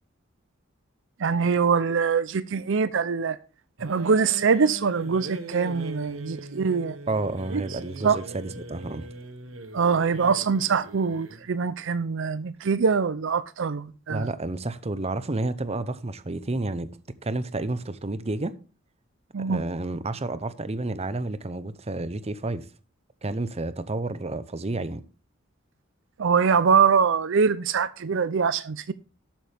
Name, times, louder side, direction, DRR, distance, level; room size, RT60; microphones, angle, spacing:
voice 1, 1.2-3.4 3.8-7.0 7.5-7.6 8.0-8.2 9.7-14.3 19.3-19.6 26.2-28.9, right 5 dB, 65° right, 0.5 m, -23 dB
sound 1, 3.8-11.5, right 1 dB, 90° right, 1.5 m, -40 dB
voice 2, 7.1-9.1 14.1-16.9 17.2-18.6 19.5-22.7 23.2-25.0, right 2 dB, 30° right, 0.7 m, -30 dB
12.0 x 8.8 x 3.4 m
head